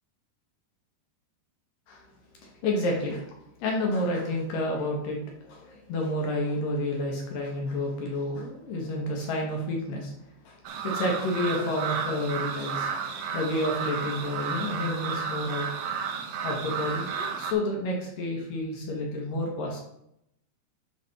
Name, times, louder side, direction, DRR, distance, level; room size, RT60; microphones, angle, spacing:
voice 1, 2.4-3.3 3.6-5.2 5.4-10.1 10.5-10.6 10.8-15.7 16.4-19.8, left 1 dB, 70° left, 0 dB, 2.2 m, -30 dB
sound 1, 10.7-17.5, right 6 dB, 80° right, 3.0 m, -32 dB
9.0 x 3.2 x 5.7 m, 0.77 s
omnidirectional pair, 5.2 m